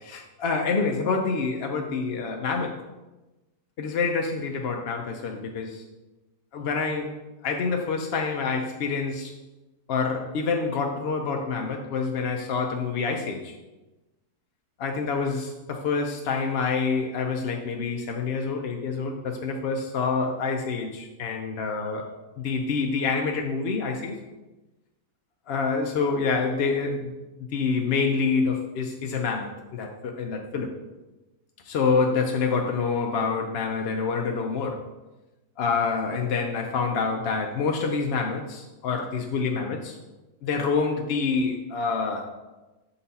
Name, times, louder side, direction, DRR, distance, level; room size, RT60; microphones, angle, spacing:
voice 1, 0.0-2.8 3.8-5.8 6.5-7.1 7.4-9.3 9.9-13.5 14.8-22.1 22.4-24.2 25.5-27.1 27.4-30.7 31.6-34.8 35.6-40.0 40.4-42.3, left 4 dB, 65° left, 2 dB, 0.6 m, -27 dB
6.7 x 4.0 x 4.1 m, 1.1 s
omnidirectional pair, 1.6 m